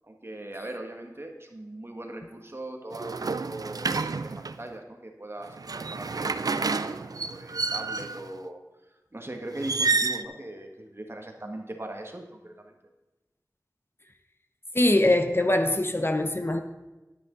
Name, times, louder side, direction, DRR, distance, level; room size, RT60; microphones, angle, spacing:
voice 1, 0.0-8.6 9.1-12.7, right 1 dB, 40° right, 3 dB, 1.6 m, -40 dB
sound 1, 2.9-4.6 5.5-8.3 9.6-10.2, right 4 dB, 75° right, 0.4 m, -29 dB
voice 2, 14.7-16.6, left 1 dB, 35° left, 7 dB, 0.8 m, -22 dB
10.5 x 9.2 x 3.9 m, 1.1 s
wide cardioid pair, 45°, 6 cm